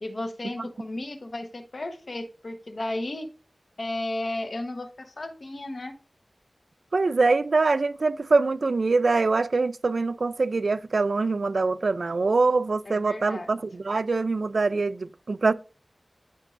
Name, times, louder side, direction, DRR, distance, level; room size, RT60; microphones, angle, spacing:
voice 1, 0.0-3.3 3.8-6.0 12.9-13.5, left 1 dB, 65° left, 1.0 m, -34 dB
voice 2, 6.9-15.5, right 3 dB, 85° right, 0.4 m, -24 dB
12.0 x 4.6 x 2.5 m
wide cardioid pair, 55°, 0 cm